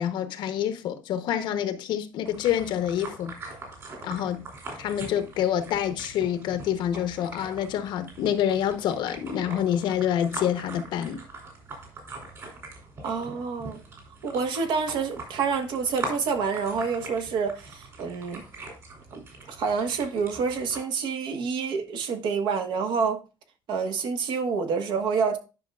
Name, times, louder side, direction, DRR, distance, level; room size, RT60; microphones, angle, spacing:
voice 1, 0.0-3.3 4.0-4.4 4.8-11.2, left 10 dB, 75° left, 0.9 m, -27 dB
sound 1, 2.3-20.8, right 3 dB, 40° right, 3.1 m, -42 dB
voice 2, 13.0-13.8 14.2-18.4 19.1-23.2 23.7-25.4, right 5 dB, 70° right, 1.3 m, -28 dB
10.5 x 5.6 x 2.3 m
cardioid pair, 165°, 8 cm